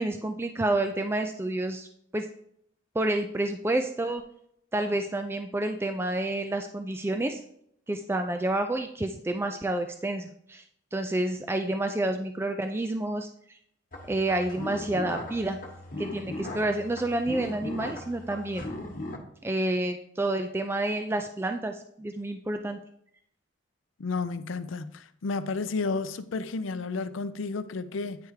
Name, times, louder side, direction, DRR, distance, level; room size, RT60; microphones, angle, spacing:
voice 1, 0.0-2.3 2.9-4.2 4.7-7.4 7.9-10.6 10.9-13.6 14.1-15.6 16.0-18.7 19.4-22.8, right 2 dB, 10° right, 0.3 m, -29 dB
sound 1, 13.9-19.2, left 1 dB, 45° left, 1.2 m, -38 dB
voice 2, 24.0-28.2, left 4 dB, 80° left, 0.5 m, -32 dB
9.2 x 3.4 x 4.8 m
head